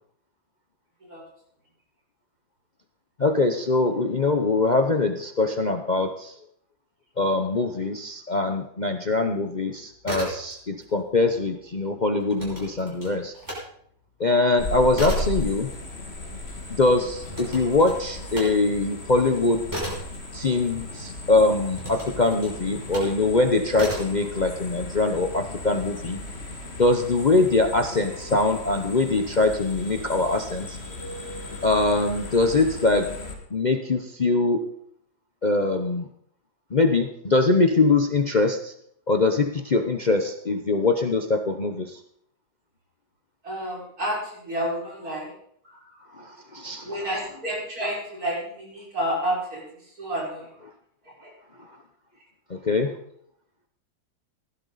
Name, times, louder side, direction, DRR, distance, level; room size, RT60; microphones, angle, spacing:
voice 1, 3.2-6.3 7.2-13.3 14.2-15.7 16.7-19.6 20.3-26.2 26.8-30.8 31.6-33.1 33.5-34.6 35.4-36.1 36.7-38.7 39.1-42.0 46.2-46.8 52.5-52.9, left 3 dB, 60° left, 5 dB, 0.4 m, -23 dB
sound 1, 9.9-10.9 11.2-13.6 14.0-21.1 21.7-23.2 23.7-24.2, equal, 10° right, 5.8 m, -36 dB
sound 2, 14.6-33.4, left 1 dB, 35° left, 2.1 m, -36 dB
voice 2, 43.4-45.3 45.6-46.2 46.8-50.5 51.2-51.3, right 1 dB, 50° right, -5 dB, 6.0 m, -30 dB
16.5 x 11.5 x 4.0 m, 0.67 s
omnidirectional pair, 2.1 m